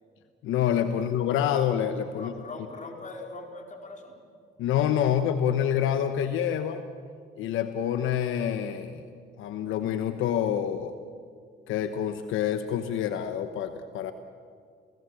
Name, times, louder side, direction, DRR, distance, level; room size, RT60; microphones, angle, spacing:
voice 1, 0.4-2.3 4.6-6.8 7.4-9.0 9.4-10.9 11.7-14.1, left 9 dB, 85° left, 9 dB, 1.1 m, -27 dB
voice 2, 2.1-4.2, left 3 dB, 40° left, 2 dB, 4.2 m, -42 dB
28.5 x 17.5 x 7.8 m, 2.2 s
cardioid pair, 90°, 20 cm